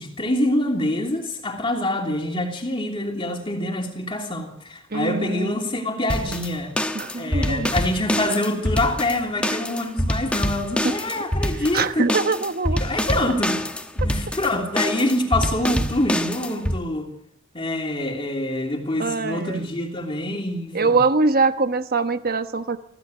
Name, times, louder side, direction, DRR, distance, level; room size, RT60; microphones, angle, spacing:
voice 1, 0.0-6.7 7.1-12.1 12.8-13.6 13.9-17.1 17.5-21.0, left 1 dB, 25° left, 3.1 m, -25 dB
voice 2, 4.9-5.6 6.9-7.7 10.8-10.9 11.7-12.8 19.0-19.7 20.7-22.8, right 3 dB, 40° right, 1.1 m, -23 dB
sound 1, 6.1-16.8, equal, 5° left, 1.2 m, -26 dB
25.0 x 15.5 x 8.0 m
head